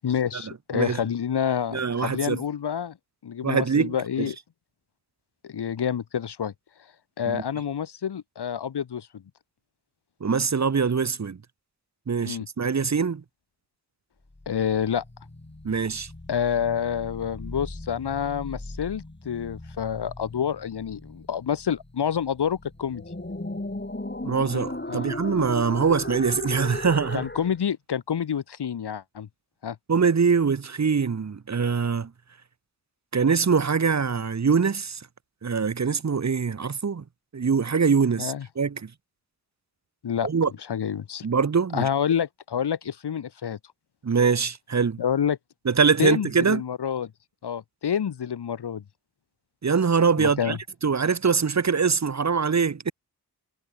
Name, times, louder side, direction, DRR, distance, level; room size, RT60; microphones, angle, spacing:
voice 1, 0.0-3.0 3.2-4.4 5.4-6.5 7.2-9.2 12.2-12.5 14.5-15.0 16.3-23.0 24.9-25.1 27.1-29.3 29.6-29.8 38.2-38.5 40.0-40.3 40.7-41.3 41.7-43.6 45.0-45.4 46.0-47.1 47.4-48.8 50.2-50.6, left 8 dB, 80° left, 0.9 m, -28 dB
voice 2, 1.7-2.4 3.4-3.9 7.3-7.4 10.2-11.4 12.1-13.2 15.6-16.1 24.2-27.2 29.9-32.1 33.1-35.1 35.4-37.0 37.3-38.9 40.2-40.5 41.2-41.9 44.0-45.0 45.7-46.6 49.6-52.9, right 5 dB, 45° right, 0.8 m, -23 dB
sound 1, 14.3-27.5, left 2 dB, 25° left, 6.0 m, -37 dB
wide cardioid pair, 50°, 40 cm